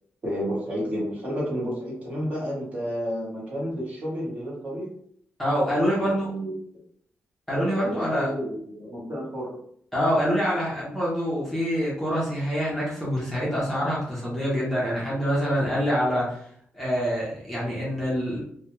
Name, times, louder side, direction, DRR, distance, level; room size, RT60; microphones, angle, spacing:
voice 1, 0.2-4.9 5.8-6.5 7.5-9.6, equal, 35° right, -5 dB, 1.0 m, -31 dB
voice 2, 5.4-6.3 7.5-8.3 9.9-16.4 16.7-18.4, equal, 5° left, -7 dB, 0.6 m, -25 dB
2.2 x 2.2 x 3.0 m, 0.64 s
wide cardioid pair, 175°, 4 cm